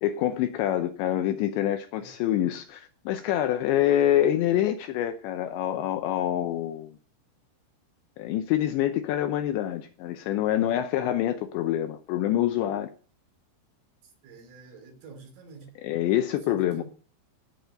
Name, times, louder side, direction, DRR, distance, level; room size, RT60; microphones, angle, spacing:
voice 1, 0.0-7.0 8.2-12.9 15.8-16.8, left 12 dB, 80° left, 2.7 m, -26 dB
voice 2, 2.0-2.5 14.2-15.7 16.5-16.8, right 4 dB, 75° right, 5.5 m, -48 dB
16.5 x 6.7 x 6.8 m
omnidirectional pair, 5.9 m